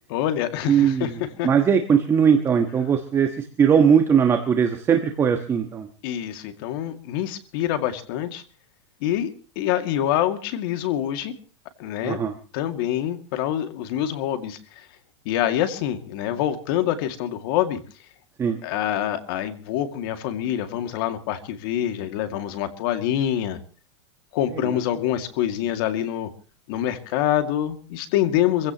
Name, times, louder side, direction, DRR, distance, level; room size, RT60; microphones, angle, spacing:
voice 1, 0.1-1.5 6.0-8.4 9.0-11.3 11.8-12.2 12.5-14.9 15.2-17.8 18.6-23.6 24.3-26.3 26.7-28.7, left 11 dB, 50° left, 8 dB, 2.3 m, -26 dB
voice 2, 0.7-1.1 1.4-5.9 12.0-12.3 18.4-18.6, right 7 dB, 15° right, 5 dB, 1.3 m, -19 dB
26.0 x 16.5 x 3.0 m, 0.38 s
supercardioid pair, 155°, 15 cm